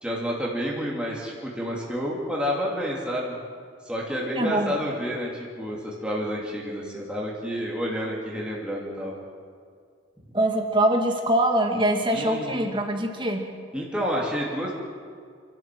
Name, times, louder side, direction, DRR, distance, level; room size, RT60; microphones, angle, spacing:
voice 1, 0.0-3.4 3.8-9.1 12.1-12.7 13.7-14.8, equal, 5° right, -4 dB, 2.8 m, -29 dB
voice 2, 4.4-4.8 10.3-13.5, right 1 dB, 25° right, 3 dB, 2.2 m, -23 dB
29.0 x 12.5 x 7.7 m, 2.2 s
head